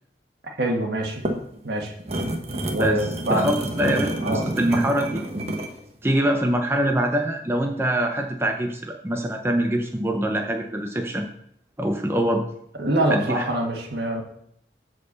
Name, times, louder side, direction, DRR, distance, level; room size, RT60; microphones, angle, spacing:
voice 1, 0.6-1.4 1.6-1.9 2.7-3.6 4.2-4.4 12.8-14.2, right 1 dB, 70° right, 1 dB, 1.7 m, -25 dB
sound 1, 1.0-5.8, right 1 dB, 35° right, 1.0 m, -29 dB
voice 2, 3.3-5.2 6.0-11.2 11.8-12.4 13.1-13.4, right 1 dB, 15° right, 3 dB, 0.7 m, -24 dB
8.1 x 4.5 x 6.9 m, 0.72 s
head